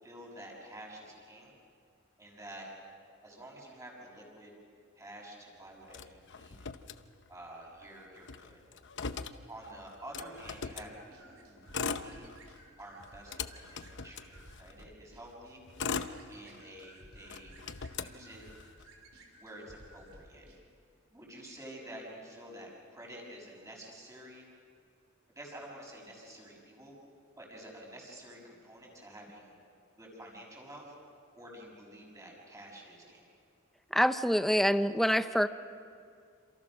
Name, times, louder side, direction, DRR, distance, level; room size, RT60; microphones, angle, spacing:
voice 1, 0.0-1.5 2.2-2.7 3.2-4.5 4.9-6.6 7.3-8.6 9.5-10.9 11.2-12.3 12.8-15.6 16.3-17.6 18.0-18.4 19.3-20.5 21.1-24.5 25.3-26.9 27.4-29.5 30.0-30.9 31.4-33.2, right 1 dB, 15° right, -1 dB, 6.4 m, -49 dB
Motor vehicle (road), 5.9-7.5 7.8-7.9 8.2-10.9 11.6-12.6 13.0-14.8 15.4-16.8 17.3-18.8, left 5 dB, 60° left, 0.9 m, -40 dB
sound 1, 10.4-20.6, right 1 dB, 75° right, 4.1 m, -56 dB
voice 2, 33.9-35.5, equal, ahead, 11 dB, 0.6 m, -26 dB
28.5 x 27.5 x 6.3 m, 2.3 s
head